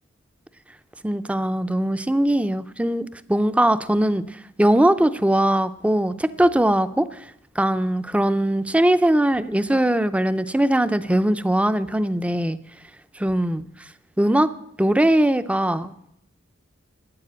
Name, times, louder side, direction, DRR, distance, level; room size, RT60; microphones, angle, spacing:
voice 1, 1.0-4.2 4.6-7.1 7.6-12.6 13.2-13.6 14.2-14.5 14.8-16.1, right 1 dB, 5° right, 13 dB, 0.5 m, -20 dB
12.5 x 9.2 x 8.7 m, 0.76 s
head